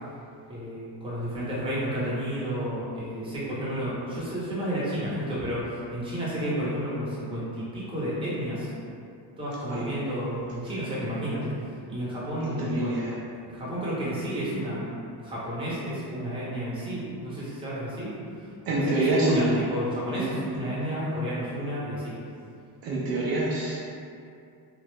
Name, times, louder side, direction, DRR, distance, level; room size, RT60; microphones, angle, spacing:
voice 1, 0.5-8.7 9.4-11.5 11.9-13.0 13.4-14.9 15.2-18.5 18.7-22.1, equal, 10° right, -9 dB, 0.8 m, -31 dB
voice 2, 12.4-13.1 18.7-19.5 20.1-20.3 22.8-23.8, right 2 dB, 55° right, -5 dB, 0.5 m, -26 dB
3.0 x 2.4 x 3.2 m, 2.5 s
wide cardioid pair, 165°, 42 cm